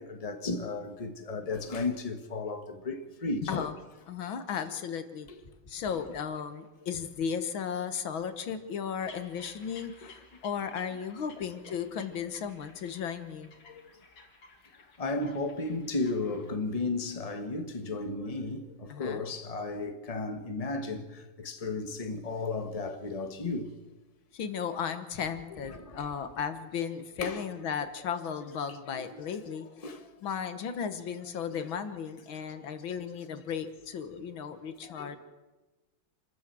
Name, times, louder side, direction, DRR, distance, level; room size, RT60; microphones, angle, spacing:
voice 1, 0.0-3.7 5.3-5.4 10.0-10.1 13.6-13.8 15.0-23.7 25.7-26.1 27.2-27.7 28.9-29.0 29.8-30.1 31.5-31.6 34.8-35.2, left 3 dB, 20° left, 1.5 m, -34 dB
voice 2, 3.4-3.8 4.1-5.3 5.7-13.5 18.9-19.3 24.3-29.7 30.2-35.2, left 7 dB, 80° left, 2.1 m, -35 dB
sound 1, 9.0-16.5, left 4 dB, 55° left, 2.9 m, -55 dB
27.5 x 13.5 x 7.7 m
omnidirectional pair, 2.2 m